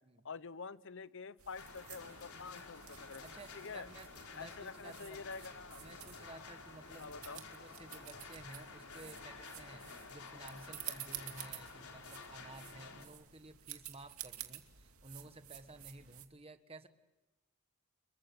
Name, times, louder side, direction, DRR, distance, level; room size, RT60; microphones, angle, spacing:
voice 1, 0.2-3.9 4.3-5.8 7.0-7.4, left 5 dB, 60° left, 16 dB, 0.8 m, -47 dB
sound 1, 1.4-16.3, right 12 dB, 75° right, 2.5 m, -52 dB
sound 2, 1.6-13.1, left 4 dB, 85° left, 4.4 m, -52 dB
voice 2, 3.2-5.2 5.8-16.9, right 2 dB, 25° right, 9 dB, 1.5 m, -54 dB
28.0 x 23.0 x 8.3 m, 1.1 s
head